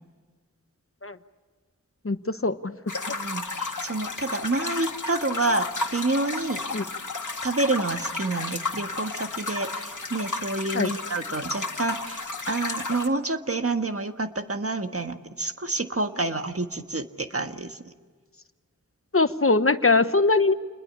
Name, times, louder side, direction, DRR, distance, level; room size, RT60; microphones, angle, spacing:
voice 1, 2.0-2.7 6.7-6.8 10.7-10.9 19.1-20.5, left 3 dB, 45° left, 10 dB, 1.1 m, -21 dB
sound 1, 2.9-13.1, left 3 dB, 80° left, 1.9 m, -33 dB
voice 2, 3.1-6.6 7.4-17.9, right 2 dB, 50° right, 7 dB, 1.5 m, -28 dB
28.5 x 21.0 x 8.5 m, 1.5 s
wide cardioid pair, 50°, 30 cm